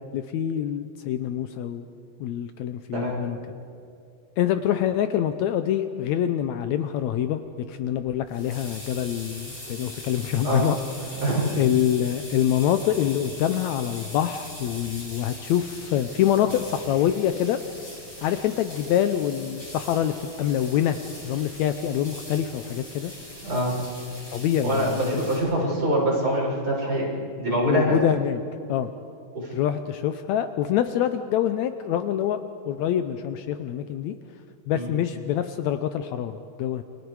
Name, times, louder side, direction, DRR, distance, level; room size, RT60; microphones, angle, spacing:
voice 1, 0.1-1.8 2.2-3.4 4.4-7.4 7.7-10.8 11.1-11.2 11.6-17.6 18.2-21.0 21.2-23.1 24.3-25.2 27.7-28.4 28.7-28.9 29.5-32.4 32.7-34.1 34.7-36.8, left 10 dB, 90° left, 9 dB, 1.6 m, -25 dB
sound 1, 7.9-25.4, left 1 dB, 30° left, 8.4 m, -41 dB
voice 2, 11.1-11.5 23.4-23.7 24.6-27.1 27.4-28.0 29.3-29.5 34.7-34.9, right 1 dB, 25° right, -5 dB, 7.0 m, -24 dB
29.0 x 24.0 x 4.8 m, 2.5 s
omnidirectional pair, 4.0 m